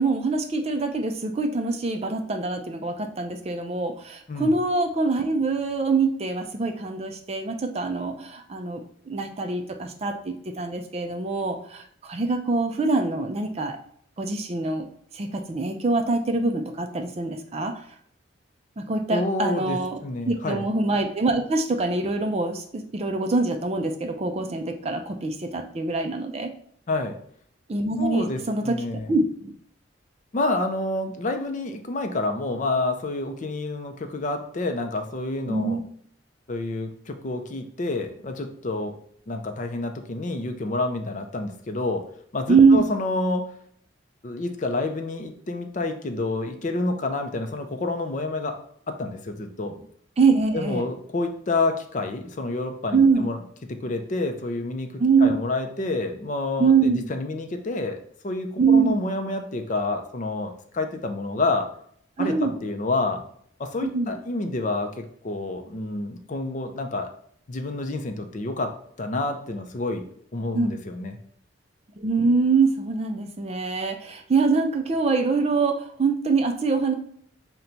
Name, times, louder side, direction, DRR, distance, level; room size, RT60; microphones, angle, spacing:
voice 1, 0.0-13.8 14.2-14.9 15.1-17.8 18.8-20.0 20.3-26.5 27.7-28.8 29.1-29.6 35.5-35.8 42.5-42.9 50.2-50.8 52.9-53.3 55.0-55.4 56.6-57.1 58.6-59.0 62.2-62.6 63.8-64.2 70.5-70.7 72.0-76.9, right 4 dB, 30° right, 6 dB, 0.4 m, -24 dB
voice 2, 19.1-20.6 26.9-27.2 28.0-29.1 30.3-35.8 36.5-38.9 39.3-42.0 42.3-43.5 44.2-48.6 48.9-49.7 50.5-53.4 53.7-58.0 58.2-61.7 62.2-63.2 63.6-67.1 67.5-70.1 70.3-71.2, left 2 dB, 40° left, 6 dB, 0.4 m, -28 dB
5.7 x 2.2 x 3.9 m, 0.62 s
head